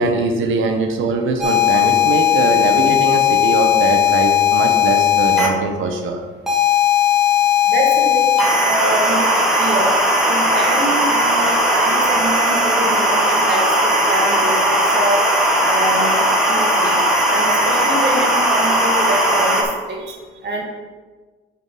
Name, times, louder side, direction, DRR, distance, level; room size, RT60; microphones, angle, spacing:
voice 1, 0.0-6.3 20.0-20.2, right 3 dB, 80° right, 4 dB, 1.0 m, -21 dB
sound 1, 1.4-5.5 6.5-19.6, left 3 dB, ahead, 2.1 m, -16 dB
voice 2, 7.7-8.3 8.6-9.9 10.3-15.3 15.7-16.1 16.5-17.0 17.3-20.0 20.4-20.6, right 1 dB, 60° right, 0 dB, 2.2 m, -25 dB
7.8 x 5.2 x 4.9 m, 1.3 s
cardioid pair, 90°, 20 cm